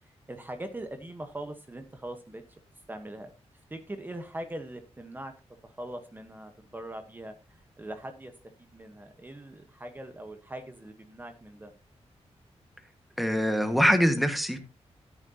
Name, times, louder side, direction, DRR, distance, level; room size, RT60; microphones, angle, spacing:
voice 1, 0.3-2.6 2.9-3.3 3.7-5.3 5.6-8.3 8.6-11.7, right 1 dB, 15° right, 7 dB, 1.2 m, -41 dB
voice 2, 13.2-14.6, equal, ahead, 8 dB, 1.7 m, -23 dB
13.5 x 10.0 x 2.9 m, 0.29 s
wide cardioid pair, 145°, 11 cm